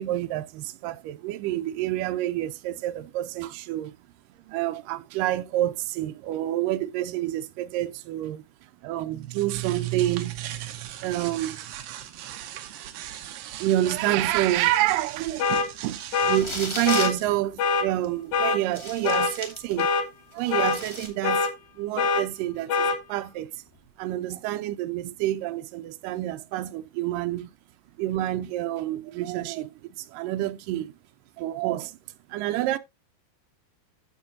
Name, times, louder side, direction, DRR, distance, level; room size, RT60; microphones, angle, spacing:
voice 1, 0.0-4.0 4.5-8.4 8.8-10.6 11.0-11.6 13.6-19.9 20.3-21.5 21.8-23.5 24.0-27.5 28.0-30.9 31.4-32.0 32.3-32.8, right 14 dB, 90° right, 1.9 m, -28 dB
sound 1, 9.1-16.6, right 14 dB, 70° right, 2.5 m, -37 dB
sound 2, 15.4-15.7 16.1-16.4 16.9-17.1 17.6-17.9 18.3-18.6 19.0-19.3 19.8-20.0 20.5-20.8 21.2-21.5 22.0-22.2 22.7-23.0, left 5 dB, 70° left, 3.1 m, -23 dB
sound 3, 16.2-17.2 18.0-18.1 18.7-19.9 20.3-21.1, equal, 10° left, 1.5 m, -35 dB
15.5 x 5.3 x 2.6 m
omnidirectional pair, 4.6 m